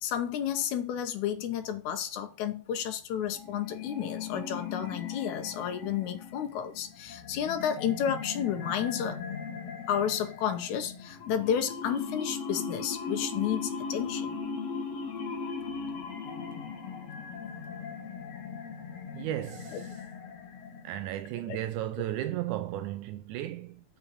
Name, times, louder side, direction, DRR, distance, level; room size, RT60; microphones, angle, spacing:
voice 1, 0.0-9.2 9.9-14.4 21.5-21.6, left 9 dB, 70° left, 2.1 m, -31 dB
sound 1, 3.3-21.2, left 5 dB, 50° left, 2.6 m, -38 dB
voice 2, 19.1-20.0 20.8-23.8, right 13 dB, 85° right, 1.8 m, -34 dB
7.3 x 5.7 x 5.4 m
omnidirectional pair, 4.1 m